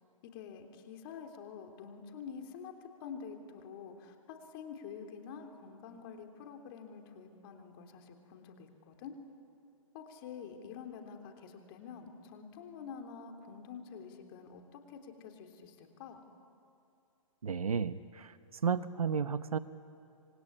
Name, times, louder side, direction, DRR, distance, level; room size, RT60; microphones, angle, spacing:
voice 1, 0.2-9.1 9.9-16.2, left 6 dB, 40° left, 5 dB, 3.4 m, -47 dB
voice 2, 17.4-19.6, right 6 dB, 90° right, 13 dB, 1.0 m, -33 dB
26.5 x 22.5 x 9.8 m, 2.6 s
hypercardioid pair, 140°, 18 cm